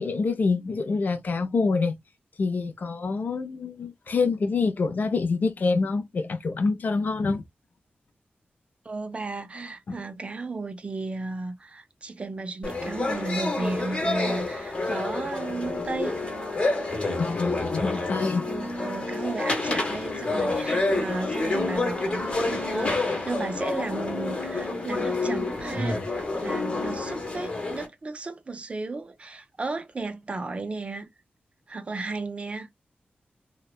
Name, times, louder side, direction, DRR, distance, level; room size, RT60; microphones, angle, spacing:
voice 1, 0.0-2.0 2.4-7.4 9.9-10.0 17.2-18.4, left 4 dB, 50° left, 0.5 m, -26 dB
voice 2, 8.8-16.2 18.4-31.1 31.7-32.7, right 3 dB, 30° right, 0.4 m, -34 dB
sound 1, 12.6-27.9, left 2 dB, 30° left, 0.8 m, -28 dB
2.8 x 2.2 x 2.2 m
wide cardioid pair, 165°, 4 cm